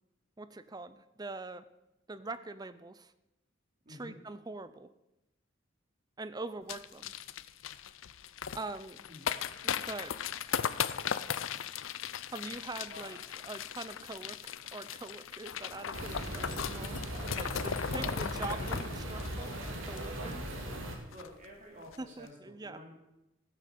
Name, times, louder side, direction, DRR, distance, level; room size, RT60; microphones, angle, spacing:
voice 1, 0.4-1.6 2.1-3.1 3.9-4.9 6.2-7.1 8.5-9.0 9.6-10.2 12.3-17.0 17.3-20.6 22.0-22.8, right 3 dB, 20° right, 13 dB, 0.6 m, -43 dB
sound 1, 6.7-20.5 20.8-20.9 21.1-21.4 21.8-22.0, left 8 dB, 80° left, 0.6 m, -38 dB
sound 2, 15.9-20.9, right 1 dB, 90° right, 2.7 m, -39 dB
voice 2, 17.9-18.7 21.1-22.9, equal, 40° right, -1 dB, 3.6 m, -47 dB
15.5 x 8.9 x 6.8 m, 0.93 s
head